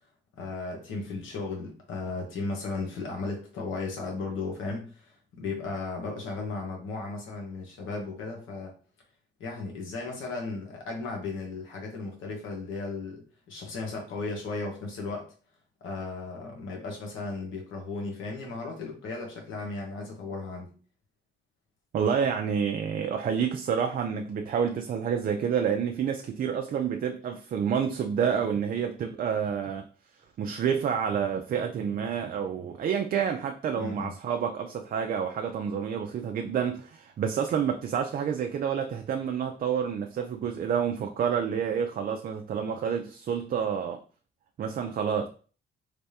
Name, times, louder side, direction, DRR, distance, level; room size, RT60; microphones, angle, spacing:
voice 1, 0.4-8.7 9.4-15.3 15.8-20.7 33.8-34.1, left 3 dB, 80° left, 1.2 m, -35 dB
voice 2, 21.9-29.8 30.4-44.0 44.6-45.3, right 7 dB, 45° right, 0.4 m, -29 dB
3.4 x 3.2 x 2.8 m
cardioid pair, 90°, 20 cm